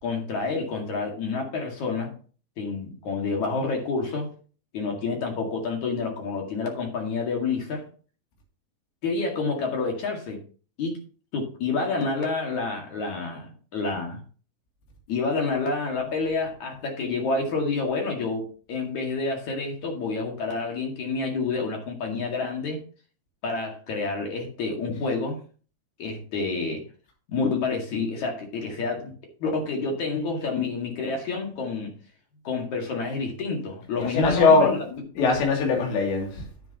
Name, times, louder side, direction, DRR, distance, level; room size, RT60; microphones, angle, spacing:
voice 1, 0.0-2.1 2.6-4.3 4.7-7.9 9.0-10.4 10.8-11.0 11.3-14.2 15.1-22.8 23.4-25.4 26.0-26.8 27.3-29.1 29.4-31.9 32.4-34.8, left 4 dB, 50° left, 2.9 m, -28 dB
voice 2, 34.0-34.8 35.2-36.4, left 4 dB, 75° left, 5.1 m, -21 dB
11.0 x 9.1 x 3.0 m
omnidirectional pair, 5.2 m